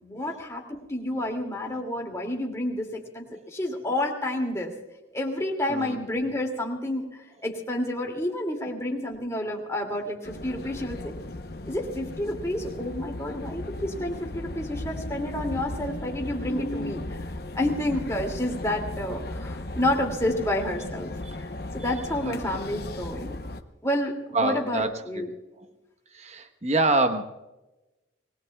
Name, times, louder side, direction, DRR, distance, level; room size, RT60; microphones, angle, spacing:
voice 1, 0.0-4.7 5.1-7.1 7.4-11.1 11.7-17.2 17.6-21.1 21.4-21.5 21.7-23.4 23.8-25.3, left 1 dB, 15° left, 0 dB, 2.4 m, -29 dB
sound 1, 10.2-23.6, left 1 dB, 55° left, 0.9 m, -36 dB
voice 2, 22.2-22.6 24.3-25.2 26.1-27.2, right 2 dB, 35° right, 7 dB, 1.1 m, -26 dB
26.5 x 19.5 x 2.3 m, 1.0 s
head